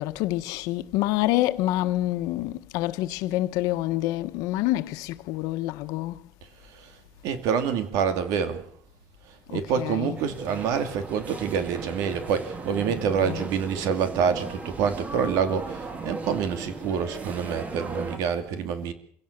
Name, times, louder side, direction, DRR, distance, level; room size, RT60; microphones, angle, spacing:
voice 1, 0.0-6.3 9.5-10.2 13.2-13.5, left 16 dB, 85° left, 1.3 m, -27 dB
voice 2, 7.2-8.6 9.3-18.9, right 7 dB, 75° right, 2.6 m, -27 dB
sound 1, 10.1-18.2, right 3 dB, 25° right, 2.4 m, -37 dB
26.0 x 16.5 x 6.7 m
cardioid pair, 150°, 6 cm